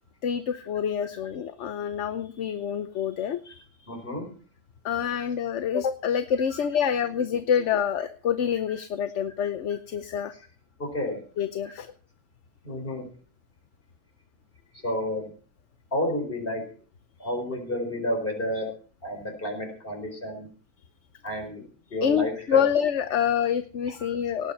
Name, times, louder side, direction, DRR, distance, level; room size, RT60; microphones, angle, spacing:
voice 1, 0.2-3.6 4.8-10.3 11.4-11.9 22.0-24.5, left 8 dB, 65° left, 11 dB, 1.1 m, -27 dB
voice 2, 3.9-4.3 5.1-5.3 6.5-6.6 10.8-11.2 11.6-11.7 12.6-13.1 14.8-15.3 15.9-16.6 17.2-18.7 19.0-20.5 21.2-21.6 21.9-22.6 23.4-23.5 24.0-24.1, equal, 40° left, 3 dB, 4.9 m, -31 dB
18.5 x 8.6 x 5.6 m, 0.42 s
omnidirectional pair, 1.4 m